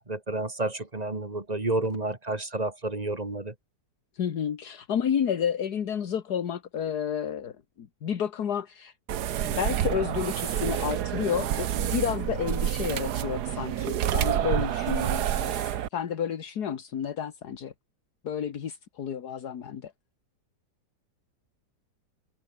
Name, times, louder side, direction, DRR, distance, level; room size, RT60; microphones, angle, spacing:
voice 1, 0.0-3.5, right 2 dB, 25° right, 2.1 m, -30 dB
voice 2, 4.1-8.9 9.4-17.7 18.2-19.9, left 8 dB, 70° left, 1.9 m, -31 dB
sound 1, 9.1-15.9, right 11 dB, 75° right, 1.5 m, -28 dB
omnidirectional pair, 1.8 m